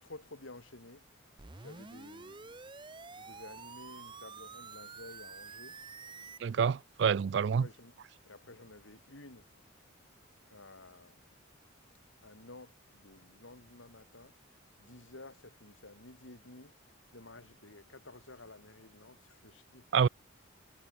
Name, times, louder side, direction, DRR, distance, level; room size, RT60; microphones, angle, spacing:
voice 1, 0.0-1.0 1.6-2.6 3.1-5.8 7.6-8.0 8.2-9.5 10.5-11.3 12.2-14.3 14.8-16.7 17.1-19.9, left 2 dB, 75° left, 2.8 m, -52 dB
sound 1, 1.4-6.4, right 4 dB, 25° right, 0.8 m, -49 dB
voice 2, 6.4-7.7 19.9-20.1, right 7 dB, 55° right, 0.3 m, -27 dB
head